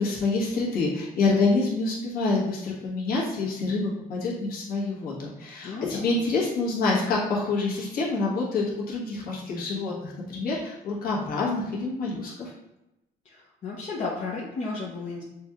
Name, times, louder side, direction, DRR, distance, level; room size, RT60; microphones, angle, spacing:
voice 1, 0.0-12.5, left 3 dB, 60° left, -5 dB, 1.3 m, -27 dB
voice 2, 5.6-6.2 13.2-15.2, left 3 dB, 45° left, -4 dB, 0.7 m, -33 dB
6.0 x 2.4 x 2.9 m, 0.92 s
cardioid pair, 110°, 17 cm